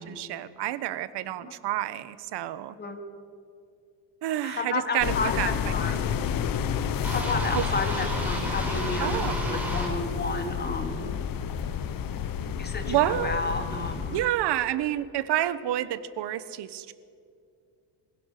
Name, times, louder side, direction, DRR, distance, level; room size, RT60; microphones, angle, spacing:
voice 1, 0.0-2.7 4.2-5.5 7.5-7.6 9.0-9.4 12.9-13.4 14.1-16.9, right 13 dB, 70° right, 15 dB, 1.2 m, -29 dB
voice 2, 4.4-6.0 7.1-11.0 12.6-14.3, left 3 dB, 25° left, 5 dB, 2.7 m, -32 dB
sound 1, 5.0-14.2, left 8 dB, 50° left, 1.2 m, -30 dB
sound 2, 7.0-9.9, right 1 dB, 5° right, 6.6 m, -32 dB
26.5 x 16.5 x 6.7 m, 2.4 s
cardioid pair, 140°, 42 cm